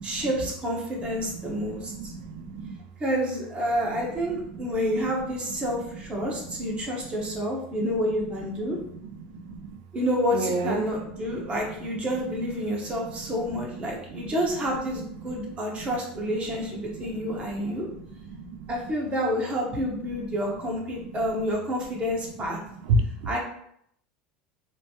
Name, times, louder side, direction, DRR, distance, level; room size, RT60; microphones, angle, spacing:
voice 1, 0.0-2.1 3.0-8.8 9.9-17.9 18.7-22.6 23.3-23.4, equal, 25° right, -1 dB, 0.8 m, -29 dB
voice 2, 1.3-2.8 3.9-4.0 4.5-4.7 6.5-6.7 7.2-7.3 8.6-9.8 10.3-10.8 11.3-11.5 13.5-14.3 15.4-15.5 15.8-15.9 16.9-18.0 18.3-18.6 22.8-23.3, right 2 dB, 75° right, 6 dB, 0.4 m, -32 dB
3.1 x 2.1 x 2.7 m, 0.71 s
supercardioid pair, 120°, 4 cm